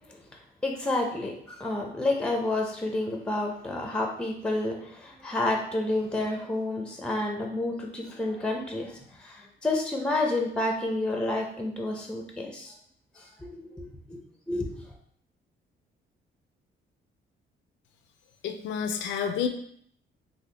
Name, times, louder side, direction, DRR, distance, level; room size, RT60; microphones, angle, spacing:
voice 1, 0.6-12.7 13.2-13.8 14.1-14.2 14.5-14.7, left 2 dB, 5° left, 2 dB, 0.5 m, -30 dB
voice 2, 18.4-19.5, left 7 dB, 70° left, 7 dB, 0.4 m, -29 dB
3.5 x 2.1 x 3.3 m, 0.65 s
cardioid pair, 90°, 20 cm